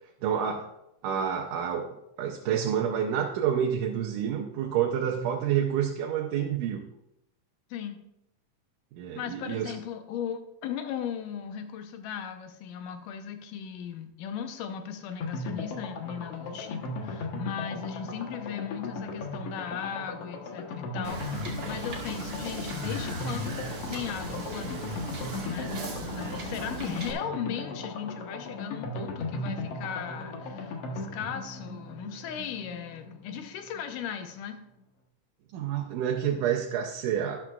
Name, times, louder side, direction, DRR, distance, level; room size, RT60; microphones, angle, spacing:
voice 1, 0.2-0.7 1.0-6.8 9.0-9.7 26.2-26.3 35.5-37.4, right 9 dB, 80° right, 1 dB, 2.4 m, -28 dB
voice 2, 7.7-8.0 9.2-25.0 25.4-34.6, left 8 dB, 85° left, 7 dB, 2.5 m, -37 dB
sound 1, 15.2-33.8 34.1-34.2 34.4-34.5, left 2 dB, 60° left, 1.9 m, -37 dB
Wind / Boat Water vehicle, 21.0-27.1, right 2 dB, 50° right, 2.5 m, -37 dB
12.0 x 11.5 x 2.4 m, 0.83 s
omnidirectional pair, 3.7 m